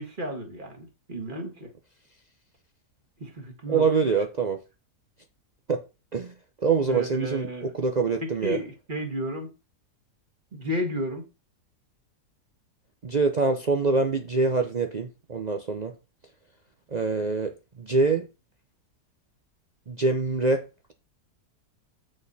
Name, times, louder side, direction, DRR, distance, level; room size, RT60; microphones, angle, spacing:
voice 1, 0.0-1.7 3.2-3.8 6.9-7.7 8.2-9.5 10.5-11.2, equal, 30° right, 1.7 m, -33 dB
voice 2, 3.7-4.6 5.7-5.8 6.1-6.3 6.6-8.6 13.0-15.9 16.9-17.5 17.8-18.3 19.9-20.6, right 4 dB, 55° right, 0.4 m, -25 dB
8.3 x 5.1 x 4.1 m
omnidirectional pair, 1.7 m